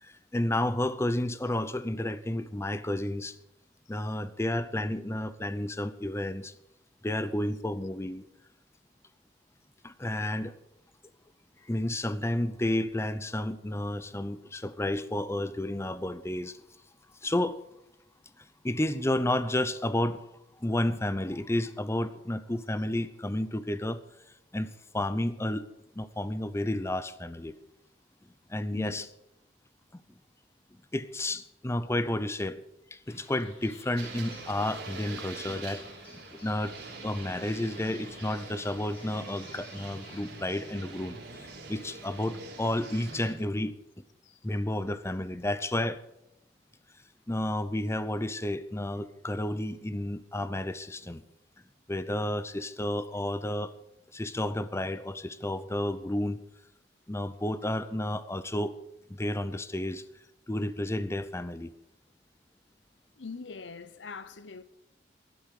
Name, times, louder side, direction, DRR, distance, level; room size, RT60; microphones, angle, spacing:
voice 1, 0.0-3.4 3.9-6.5 7.0-8.3 9.8-10.5 11.7-16.6 17.2-17.6 18.4-20.2 20.6-24.0 24.5-25.7 26.0-27.5 28.5-29.1 29.9-30.0 30.9-32.6 32.9-36.8 37.0-43.7 44.4-46.0 47.3-51.2 51.9-53.8 54.1-56.4 57.1-58.8 59.1-60.0 60.5-61.7, left 1 dB, 15° left, 0.6 m, -31 dB
voice 2, 28.7-29.1 44.2-44.4 63.2-64.6, left 4 dB, 85° left, 0.8 m, -43 dB
sound 1, 33.1-40.3, left 2 dB, 30° left, 4.6 m, -53 dB
sound 2, 34.0-43.4, right 3 dB, 65° right, 3.4 m, -44 dB
12.5 x 11.5 x 6.6 m
head